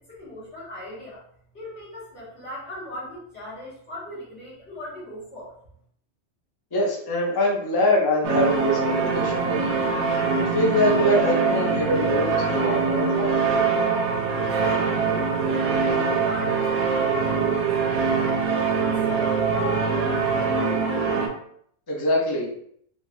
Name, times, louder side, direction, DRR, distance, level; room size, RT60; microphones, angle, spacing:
voice 1, 0.1-1.2 1.5-5.5 14.6-17.7 18.2-21.1, left 1 dB, 60° left, -7 dB, 1.6 m, -38 dB
voice 2, 6.7-9.8 10.4-13.4 21.9-22.5, left 1 dB, 30° left, -2 dB, 0.4 m, -23 dB
sound 1, 8.2-21.3, right 5 dB, 75° right, 0.9 m, -23 dB
3.4 x 2.3 x 2.6 m, 0.66 s
omnidirectional pair, 1.3 m